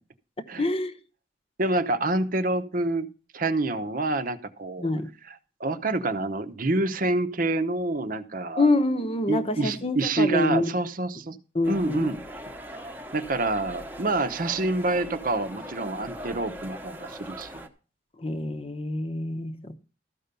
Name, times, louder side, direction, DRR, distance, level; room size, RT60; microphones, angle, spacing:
voice 1, 0.6-0.9 4.8-5.1 8.6-10.8 11.5-12.1 18.2-19.7, left 2 dB, 35° left, 0.9 m, -26 dB
voice 2, 1.6-4.9 5.3-8.7 9.3-11.4 11.7-12.3 13.1-17.7, right 2 dB, 50° right, 0.9 m, -27 dB
sound 1, 11.6-17.7, equal, 10° right, 1.0 m, -41 dB
13.5 x 5.3 x 6.8 m
head